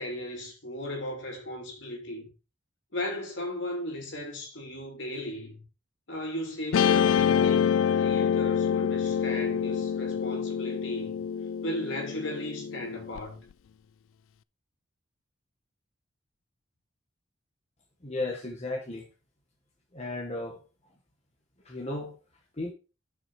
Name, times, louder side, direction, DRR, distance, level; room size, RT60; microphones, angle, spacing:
voice 1, 0.0-2.3 2.9-5.6 6.1-11.2 11.6-13.4, left 1 dB, 60° left, 3.2 m, -36 dB
Guitar, 6.7-13.2, left 8 dB, 75° left, 0.3 m, -26 dB
voice 2, 18.0-19.1 19.9-20.6 21.6-22.1 22.6-22.7, left 2 dB, 30° left, 1.4 m, -34 dB
7.6 x 6.2 x 4.7 m
head